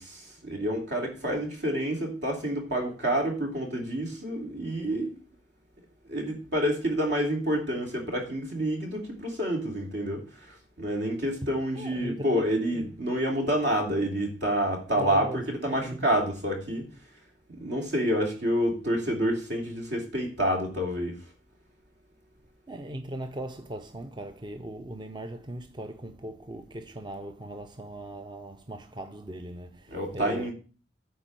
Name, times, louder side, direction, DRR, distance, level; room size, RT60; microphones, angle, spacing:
voice 1, 0.0-5.1 6.1-16.9 17.5-21.2 29.9-30.5, equal, 65° right, 3.0 m, -28 dB
voice 2, 11.7-12.4 12.7-12.9 15.0-16.1 22.7-30.5, right 1 dB, 25° right, 0.6 m, -39 dB
9.4 x 4.5 x 7.5 m
head